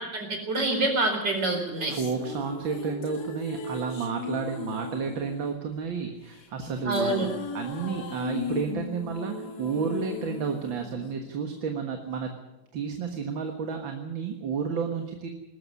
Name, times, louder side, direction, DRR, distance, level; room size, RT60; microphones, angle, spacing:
voice 1, 0.0-1.9 6.8-7.3, right 2 dB, 60° right, 4 dB, 5.0 m, -26 dB
sound 1, 1.4-11.8, left 5 dB, 55° left, 2.2 m, -38 dB
voice 2, 1.9-7.3 7.5-12.3 12.7-15.3, right 6 dB, 80° right, 4 dB, 2.3 m, -31 dB
19.5 x 13.5 x 9.6 m, 0.96 s
omnidirectional pair, 2.1 m